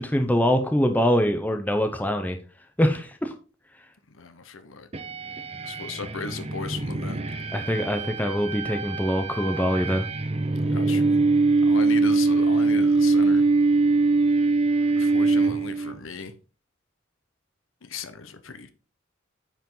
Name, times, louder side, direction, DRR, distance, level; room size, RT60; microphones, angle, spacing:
voice 1, 0.0-2.4 2.8-3.3 7.5-10.1, equal, 10° left, 0.8 m, -24 dB
voice 2, 4.1-4.9 5.6-7.2 10.6-11.2 11.6-13.4 14.9-16.3 17.8-18.7, left 4 dB, 75° left, 1.0 m, -37 dB
sound 1, 4.9-16.0, right 3 dB, 30° right, 0.8 m, -23 dB
9.1 x 5.1 x 3.9 m
head